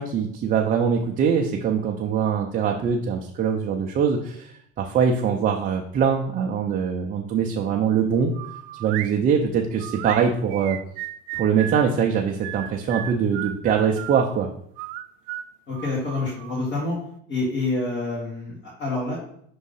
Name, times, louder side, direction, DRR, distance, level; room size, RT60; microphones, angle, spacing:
voice 1, 0.0-8.3 8.8-10.8 11.3-14.5, right 7 dB, 30° right, 2 dB, 0.5 m, -23 dB
sound 1, 8.3-9.1 9.8-11.9 12.4-14.2 14.8-16.6, right 14 dB, 80° right, 0.5 m, -35 dB
voice 2, 15.7-17.0 17.3-19.2, left 2 dB, 40° left, -7 dB, 2.1 m, -27 dB
5.4 x 3.6 x 5.4 m, 0.67 s
cardioid pair, 150°, 30 cm